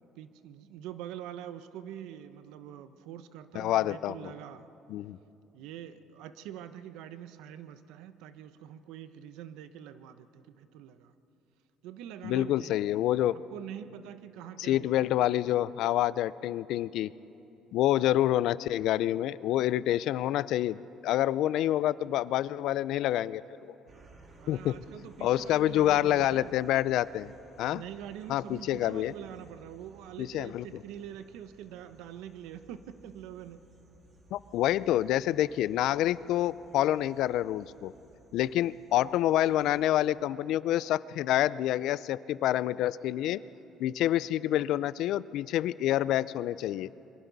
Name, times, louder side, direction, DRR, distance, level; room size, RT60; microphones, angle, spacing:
voice 1, 0.2-4.7 5.5-11.1 11.8-12.8 13.3-15.1 23.8-26.6 27.7-33.6, right 10 dB, 90° right, 11 dB, 0.8 m, -45 dB
voice 2, 3.5-4.3 4.9-5.2 12.2-13.3 14.6-17.1 17.7-23.4 24.5-24.8 25.2-27.3 27.6-27.8 28.3-29.1 30.2-30.6 34.3-37.9 38.3-43.4 43.8-46.9, left 13 dB, 70° left, 18 dB, 0.4 m, -27 dB
sound 1, 23.9-40.1, right 3 dB, 35° right, 2.2 m, -58 dB
28.5 x 23.0 x 4.0 m, 2.9 s
cardioid pair, 130°, 0 cm